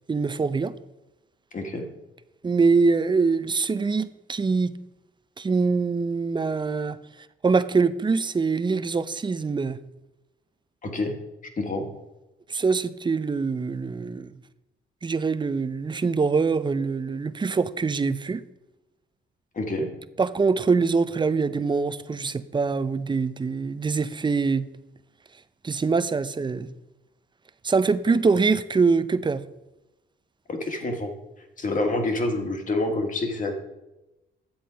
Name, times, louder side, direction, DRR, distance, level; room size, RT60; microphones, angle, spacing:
voice 1, 0.1-0.7 2.4-4.7 5.4-7.0 7.4-9.8 12.5-14.3 15.0-18.4 20.2-24.7 25.6-26.7 27.6-29.4, right 4 dB, 25° right, 0.5 m, -24 dB
voice 2, 1.5-1.9 10.8-11.2 11.6-11.9 19.6-19.9 30.5-31.1 31.6-33.6, left 2 dB, 40° left, 1.8 m, -27 dB
10.5 x 7.7 x 5.1 m
cardioid pair, 90°, 20 cm